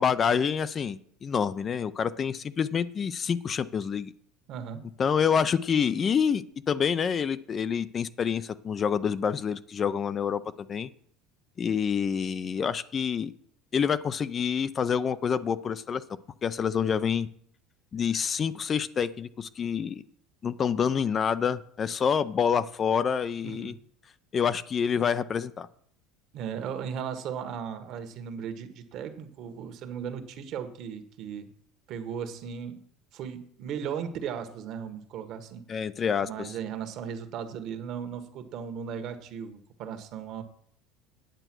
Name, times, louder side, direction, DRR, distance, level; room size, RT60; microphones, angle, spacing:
voice 1, 0.0-4.1 5.0-10.9 11.6-13.3 13.7-16.0 16.4-17.3 17.9-20.0 20.4-23.7 24.3-25.7 35.7-36.5, left 7 dB, 30° left, 14 dB, 0.5 m, -27 dB
voice 2, 4.5-4.8 23.5-23.8 26.3-31.5 31.9-32.8 33.1-35.8 36.2-40.4, right 7 dB, 50° right, 9 dB, 1.4 m, -36 dB
9.1 x 7.9 x 6.1 m, 0.64 s
supercardioid pair, 125°, 0 cm